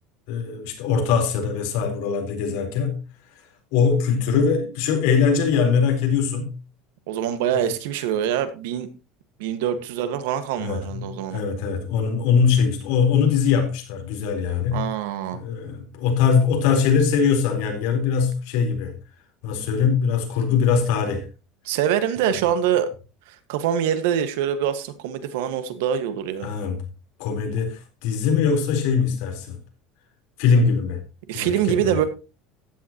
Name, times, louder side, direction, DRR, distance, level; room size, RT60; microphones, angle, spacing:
voice 1, 0.3-3.0 3.7-6.5 10.6-14.9 15.3-18.9 19.4-21.3 26.4-26.8 27.2-29.6 30.4-31.0 31.3-32.0, left 6 dB, 65° left, 4.2 m, -22 dB
voice 2, 7.1-8.9 9.4-11.4 14.7-15.4 21.6-22.9 23.3-26.5 31.3-32.0, right 9 dB, 85° right, 1.7 m, -24 dB
15.0 x 10.5 x 3.0 m
cardioid pair, 175°, 0 cm